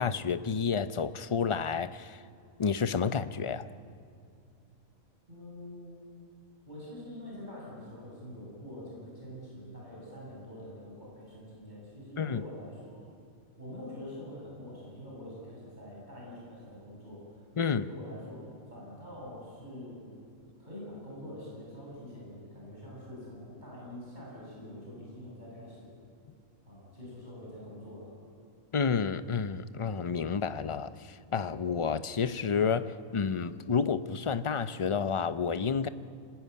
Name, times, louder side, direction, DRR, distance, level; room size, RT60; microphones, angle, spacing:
voice 1, 0.0-2.2 2.6-3.7 12.2-12.4 17.6-17.9 28.7-35.9, left 6 dB, 35° left, 13 dB, 0.5 m, -30 dB
voice 2, 5.3-6.0 6.7-13.0 13.6-20.1 20.6-25.9 26.6-28.1, left 1 dB, 30° right, -6 dB, 7.8 m, -45 dB
26.5 x 19.0 x 9.6 m, 2.5 s
omnidirectional pair, 1.4 m